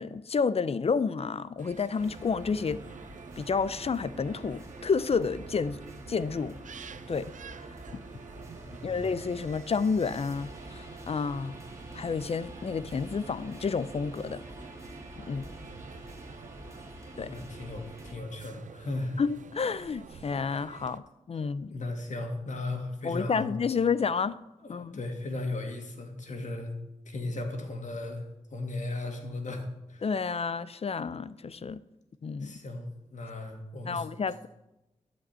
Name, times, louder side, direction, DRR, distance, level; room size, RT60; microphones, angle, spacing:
voice 1, 0.0-2.8 3.4-5.8 6.1-6.6 7.1-7.3 7.9-8.0 8.8-11.6 11.9-14.4 15.2-15.5 17.2-17.3 19.2-21.7 23.0-24.4 24.7-25.0 30.0-31.8 32.2-32.6 33.8-34.5, left 5 dB, 50° left, 0.5 m, -30 dB
sound 1, 1.6-21.0, right 7 dB, 75° right, 0.6 m, -49 dB
sound 2, 2.0-18.1, right 1 dB, 25° right, 1.7 m, -46 dB
voice 2, 8.6-9.0 17.3-19.2 21.4-23.5 24.6-26.7 27.1-28.2 28.5-30.0 32.4-34.1, left 2 dB, 70° left, 2.2 m, -36 dB
12.5 x 5.2 x 8.2 m
cardioid pair, 75°, 13 cm